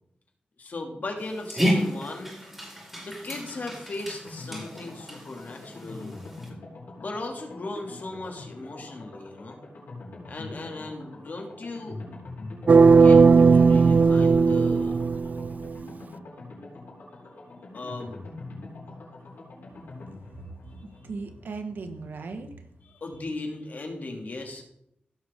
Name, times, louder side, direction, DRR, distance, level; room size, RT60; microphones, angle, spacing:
voice 1, 0.6-2.3 3.0-6.1 7.0-9.6 10.3-12.0 12.8-14.9 17.7-18.2 22.8-24.6, left 2 dB, 60° left, 2 dB, 2.4 m, -37 dB
Dog, 1.2-6.5, equal, 5° right, 5.1 m, -32 dB
sound 1, 4.2-22.9 23.1-23.2 23.5-23.6, left 2 dB, 85° left, 4.4 m, -44 dB
sound 2, 12.7-15.7, right 5 dB, 55° right, 0.4 m, -16 dB
voice 2, 20.8-22.5, right 4 dB, 80° right, 7 dB, 1.3 m, -37 dB
16.5 x 6.5 x 3.7 m, 0.74 s
wide cardioid pair, 75°, 3 cm